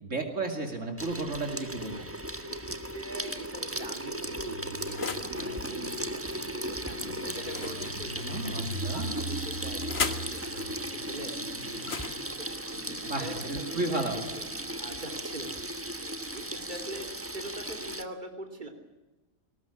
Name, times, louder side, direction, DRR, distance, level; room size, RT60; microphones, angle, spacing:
voice 1, 0.0-2.1 8.2-9.1 13.1-14.2, right 2 dB, 65° right, 3 dB, 3.0 m, -33 dB
Water tap faucet / Sink (filling or washing), 1.0-18.0, right 1 dB, 10° right, 1.2 m, -36 dB
sound 1, 2.2-3.0 3.7-5.4 7.4-8.5 9.4-10.4 11.7-13.7, left 5 dB, 50° left, 1.6 m, -39 dB
voice 2, 2.5-8.6 8.9-9.8 10.2-11.9 12.6-14.0 14.3-14.4 14.8-15.7 16.0-18.7, right 1 dB, 35° right, 3 dB, 3.3 m, -43 dB
sound 2, 4.3-14.7, right 2 dB, 85° right, 3.1 m, -42 dB
20.5 x 19.0 x 9.9 m, 1.1 s
omnidirectional pair, 1.4 m